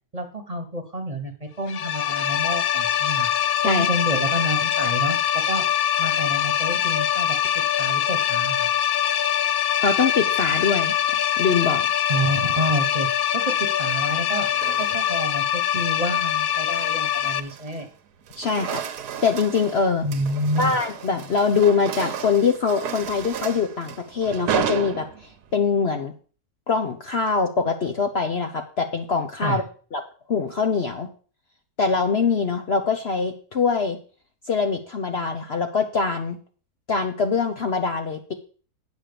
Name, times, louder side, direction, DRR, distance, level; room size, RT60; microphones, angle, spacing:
voice 1, 0.1-3.3 3.6-5.6 6.0-7.4 7.8-8.7 12.1-14.5 14.8-17.9 20.0-20.8 29.4-29.6, right 1 dB, 25° right, 5 dB, 1.2 m, -29 dB
sound 1, 1.7-17.4, left 10 dB, 70° left, 0.5 m, -23 dB
voice 2, 9.8-11.0 11.4-11.9 18.4-18.8 19.2-20.0 20.6-26.1 26.7-29.6 29.9-30.0 30.3-31.1 31.8-34.0 34.5-36.4 36.9-38.3, left 5 dB, 50° left, 5 dB, 0.9 m, -23 dB
sound 2, 12.1-12.6 13.7-15.3 15.7-16.0 16.5-17.9 18.2-25.5, right 8 dB, 90° right, 1.4 m, -33 dB
9.0 x 5.8 x 6.8 m, 0.40 s
omnidirectional pair, 1.6 m